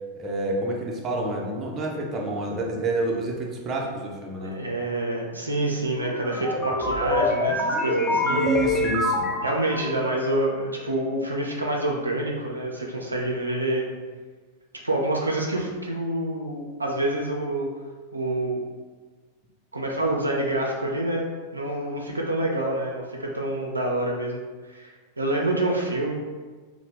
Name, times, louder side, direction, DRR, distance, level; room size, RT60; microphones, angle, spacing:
voice 1, 0.1-4.6 8.3-9.3, right 2 dB, 25° right, -1 dB, 0.5 m, -28 dB
voice 2, 4.4-8.4 9.4-13.9 14.8-17.7 18.1-18.6 19.7-21.3 21.5-24.4 24.6-24.9 25.2-26.1, right 1 dB, 80° right, -1 dB, 0.3 m, -27 dB
sound 1, 6.0-10.2, left 1 dB, 20° left, 0.5 m, -25 dB
2.7 x 2.0 x 3.1 m, 1.4 s
figure-of-eight pair, 90°, 0 cm